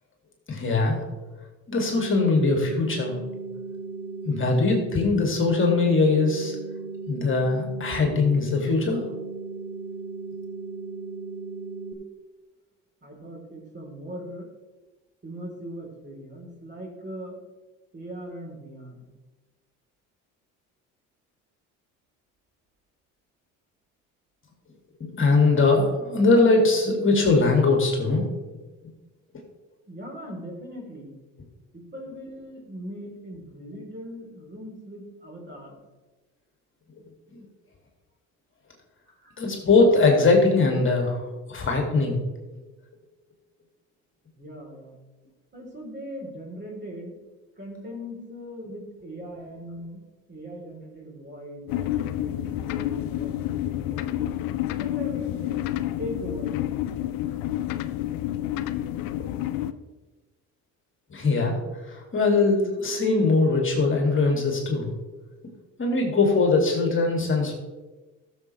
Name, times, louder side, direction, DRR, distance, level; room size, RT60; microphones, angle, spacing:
voice 1, 0.5-1.0 1.7-3.2 4.2-6.6 7.1-9.0 25.0-28.3 37.3-37.4 39.4-41.2 41.5-42.2 59.1-59.3 61.1-61.6 61.8-64.9 65.8-67.5, left 3 dB, 35° left, 1 dB, 2.4 m, -21 dB
sound 1, 1.9-11.9, right 4 dB, 85° right, 1.2 m, -36 dB
voice 2, 13.0-14.5 15.2-17.4 17.9-19.1 29.9-31.2 31.7-35.8 39.1-39.3 44.4-45.0 45.5-47.2 47.6-50.0 50.3-54.3 54.8-55.5 56.0-56.6, equal, 30° right, -1 dB, 3.7 m, -39 dB
sound 2, 51.7-59.7, left 13 dB, 70° left, 0.6 m, -29 dB
14.0 x 7.2 x 3.3 m, 1.2 s
supercardioid pair, 70°, 36 cm